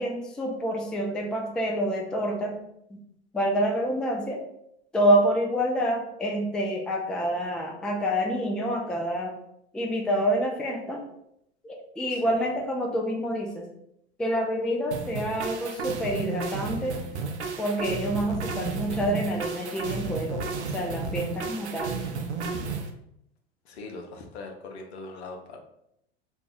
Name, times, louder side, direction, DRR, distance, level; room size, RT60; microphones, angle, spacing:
voice 1, 0.0-2.6 3.3-4.4 4.9-9.3 9.7-11.0 11.6-13.6 14.2-17.0 17.6-21.9, equal, 5° left, 1 dB, 0.3 m, -27 dB
voice 2, 12.1-12.4 23.6-25.6, left 3 dB, 70° left, 3 dB, 0.8 m, -41 dB
sound 1, 14.9-22.9, right 4 dB, 80° right, 0.6 m, -33 dB
2.7 x 2.3 x 3.9 m, 0.77 s
hypercardioid pair, 90°, 33 cm